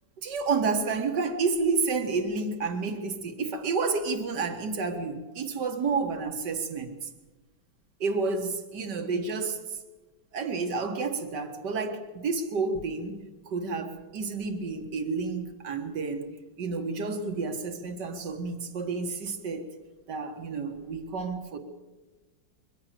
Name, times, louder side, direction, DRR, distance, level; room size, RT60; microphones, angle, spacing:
voice 1, 0.2-7.1 8.0-9.6 10.3-16.3 16.6-19.6 20.1-21.6, right 4 dB, 55° right, 2.2 m, -30 dB
23.0 x 15.5 x 7.6 m
omnidirectional pair, 2.2 m